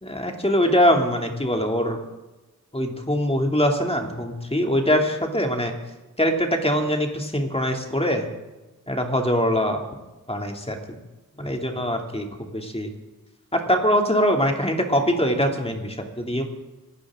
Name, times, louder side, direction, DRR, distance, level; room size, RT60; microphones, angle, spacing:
voice 1, 0.0-2.0 2.7-5.7 6.2-8.3 8.9-9.8 10.3-11.0 11.4-12.9 13.5-16.4, equal, 15° left, 3 dB, 2.6 m, -23 dB
25.5 x 12.5 x 3.7 m, 1.1 s
wide cardioid pair, 60°, 35 cm